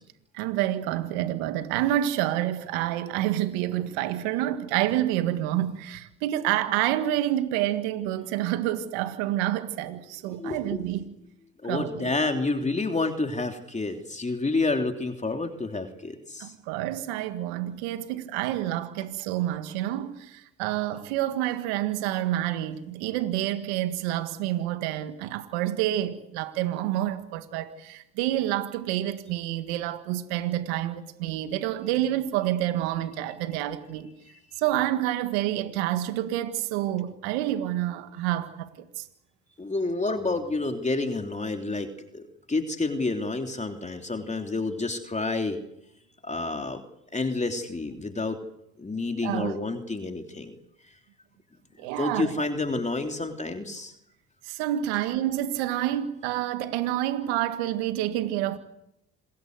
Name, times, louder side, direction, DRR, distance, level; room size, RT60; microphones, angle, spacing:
voice 1, 0.3-11.1 11.6-12.1 16.4-34.1 34.6-39.0 49.2-49.6 51.8-52.5 54.4-58.6, right 13 dB, 85° right, 1.8 m, -28 dB
voice 2, 10.4-10.8 11.6-16.5 39.6-41.9 42.1-45.6 46.2-46.8 47.1-48.4 48.8-50.6 52.0-53.9, left 3 dB, 20° left, 3.2 m, -29 dB
27.5 x 21.0 x 8.1 m
hypercardioid pair, 60°, 31 cm